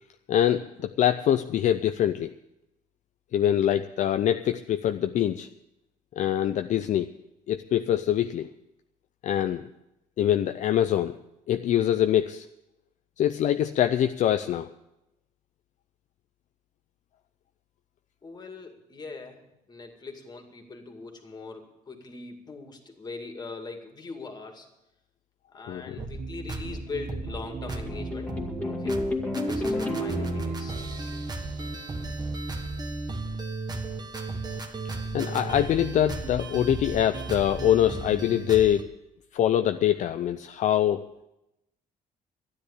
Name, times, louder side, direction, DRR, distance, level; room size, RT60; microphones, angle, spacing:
voice 1, 0.3-2.3 3.3-5.5 6.2-7.1 7.5-8.5 9.2-9.7 10.2-11.2 11.5-12.4 13.2-14.7 25.7-26.0 35.1-38.9 39.3-41.1, left 11 dB, 60° left, 8 dB, 0.5 m, -24 dB
voice 2, 18.2-19.4 19.7-24.7 25.5-28.3 28.7-29.0 29.4-30.8, left 3 dB, 30° left, 4 dB, 2.3 m, -41 dB
sound 1, 26.0-38.8, right 3 dB, 30° right, 1.5 m, -35 dB
sound 2, 26.6-32.0, left 1 dB, 10° left, 2.2 m, -33 dB
12.5 x 10.0 x 8.3 m, 0.90 s
cardioid pair, 115°, 14 cm